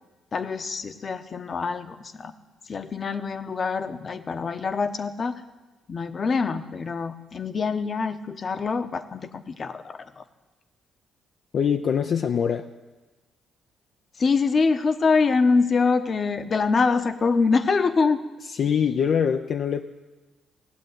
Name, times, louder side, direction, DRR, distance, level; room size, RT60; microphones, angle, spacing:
voice 1, 0.3-2.3 2.6-5.4 5.9-10.2 14.2-18.2, left 4 dB, 40° left, 10 dB, 1.0 m, -24 dB
voice 2, 11.5-12.7 18.5-19.8, left 7 dB, 60° left, 5 dB, 0.6 m, -23 dB
18.0 x 7.7 x 9.6 m, 1.2 s
cardioid pair, 90°, 0 cm